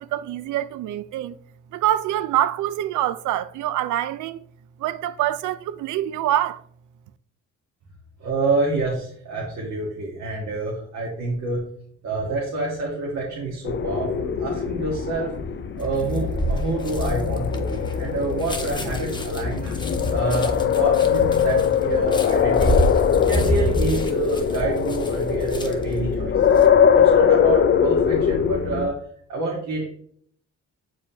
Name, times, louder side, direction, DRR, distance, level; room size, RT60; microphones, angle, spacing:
voice 1, 0.0-1.4 1.7-4.4 4.8-6.6, right 13 dB, 80° right, 0.5 m, -25 dB
voice 2, 8.2-11.6 12.0-15.4 15.8-19.8 20.1-22.9 23.3-26.6 26.9-29.0 29.3-29.9, right 3 dB, 65° right, 1.7 m, -27 dB
sound 1, 13.7-28.9, left 8 dB, 40° left, 0.6 m, -21 dB
sound 2, 15.8-26.0 26.4-26.7, right 1 dB, 15° left, 0.9 m, -28 dB
7.3 x 4.8 x 2.8 m
cardioid pair, 90°, 30 cm